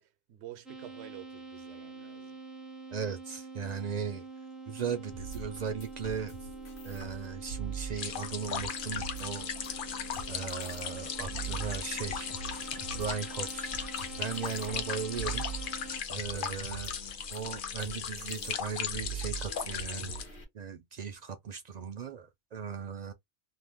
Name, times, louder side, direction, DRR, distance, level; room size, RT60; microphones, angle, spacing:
voice 1, 0.0-2.4, right 12 dB, 85° right, 0.9 m, -49 dB
sound 1, 0.7-16.0, right 3 dB, ahead, 0.5 m, -46 dB
voice 2, 2.9-4.2 4.7-6.3 6.8-9.5 9.8-9.9 10.3-12.3 12.9-13.9 14.2-15.5 16.1-16.9 17.3-20.1 20.5-23.1, right 6 dB, 55° right, 0.5 m, -37 dB
sound 2, 5.1-20.4, right 5 dB, 80° left, 1.4 m, -43 dB
sound 3, 8.0-20.3, left 7 dB, 60° left, 0.7 m, -37 dB
2.8 x 2.1 x 3.4 m
omnidirectional pair, 1.1 m